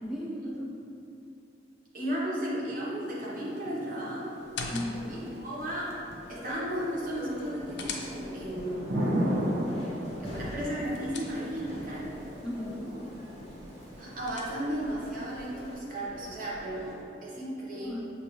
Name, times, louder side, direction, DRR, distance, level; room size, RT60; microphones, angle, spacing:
voice 1, 0.0-0.8 4.7-5.2 12.4-13.0 17.7-18.0, left 1 dB, 5° right, -6 dB, 0.7 m, -36 dB
voice 2, 1.9-4.3 5.1-5.9 6.3-8.9 10.2-12.2 14.0-18.0, right 1 dB, 50° right, -6 dB, 1.0 m, -34 dB
Thunder / Rain, 3.0-15.7, equal, 70° right, 0.8 m, -37 dB
sound 1, 4.4-5.3 7.3-8.5 10.5-11.8 13.8-14.9, left 3 dB, 80° left, 0.5 m, -42 dB
sound 2, 4.9-17.0, left 1 dB, 35° left, 0.6 m, -45 dB
6.7 x 2.6 x 3.0 m, 2.7 s
head